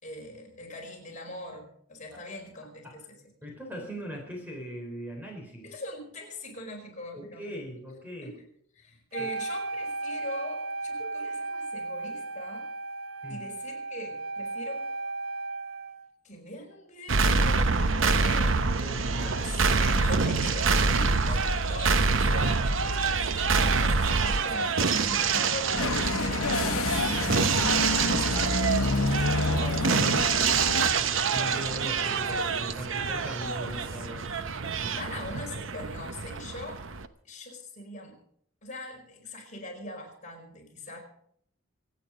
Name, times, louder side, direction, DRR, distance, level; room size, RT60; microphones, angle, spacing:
voice 1, 0.0-3.1 5.6-7.6 8.2-8.4 8.7-12.7 13.3-14.8 16.2-18.5 19.4-27.5 28.0-29.9 34.8-36.8 37.2-38.2 38.6-41.0, left 1 dB, 35° left, 0 dB, 4.8 m, -42 dB
voice 2, 3.4-5.8 7.1-8.4 9.2-9.3 13.2-13.5 18.8-19.5 29.5-30.3 30.9-35.0, equal, 10° right, 1 dB, 4.0 m, -40 dB
Wind instrument woodwind instrument, 9.1-16.1, right 3 dB, 85° right, 1.3 m, -35 dB
sound 1, 17.1-37.1, right 4 dB, 65° right, 0.9 m, -26 dB
sound 2, 25.8-30.9, left 2 dB, 85° left, 1.1 m, -28 dB
25.5 x 9.2 x 5.1 m, 0.65 s
head